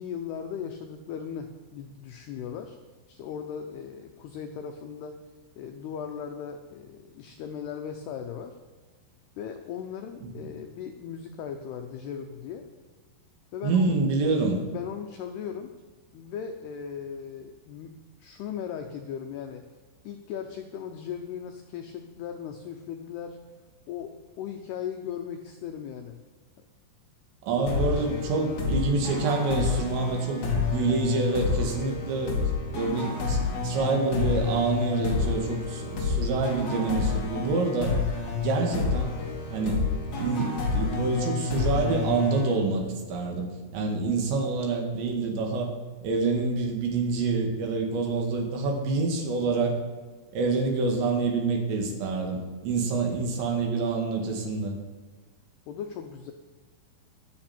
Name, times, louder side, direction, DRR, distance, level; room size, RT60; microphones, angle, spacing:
voice 1, 0.0-2.8 3.1-5.2 5.6-8.6 9.4-12.7 13.5-14.0 14.6-15.7 16.1-19.7 20.0-23.4 23.9-26.2 27.6-27.9 55.7-56.3, left 8 dB, 90° left, 5 dB, 2.3 m, -38 dB
voice 2, 13.6-14.6 27.4-32.4 32.7-37.9 38.4-39.1 39.5-39.9 40.2-45.7 46.0-49.8 50.3-54.7, right 3 dB, 65° right, 1 dB, 4.0 m, -27 dB
sound 1, 27.7-43.1, left 4 dB, 45° left, 3.0 m, -29 dB
22.5 x 7.5 x 4.4 m, 1.4 s
omnidirectional pair, 5.7 m